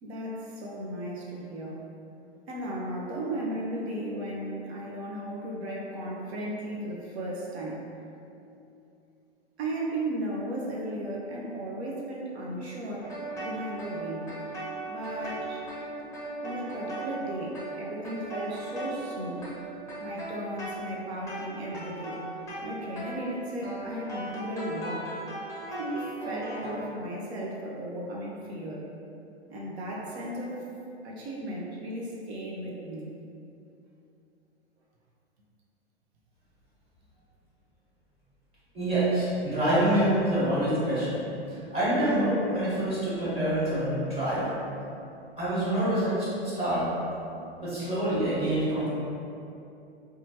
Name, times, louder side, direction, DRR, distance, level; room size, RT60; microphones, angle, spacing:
voice 1, 0.0-1.8 2.5-7.9 9.6-14.3 14.9-15.6 16.4-19.7 20.0-22.2 22.6-25.2 25.7-28.9 29.5-30.6 31.0-33.1, right 1 dB, 70° right, -3 dB, 0.7 m, -35 dB
sound 1, 13.0-26.9, right 2 dB, 10° left, 0.6 m, -38 dB
voice 2, 38.7-41.2 41.5-44.5 45.4-46.3 46.6-46.9 47.6-48.9, right 1 dB, 20° right, -11 dB, 1.3 m, -26 dB
2.8 x 2.3 x 2.8 m, 2.7 s
hypercardioid pair, 105°, 33 cm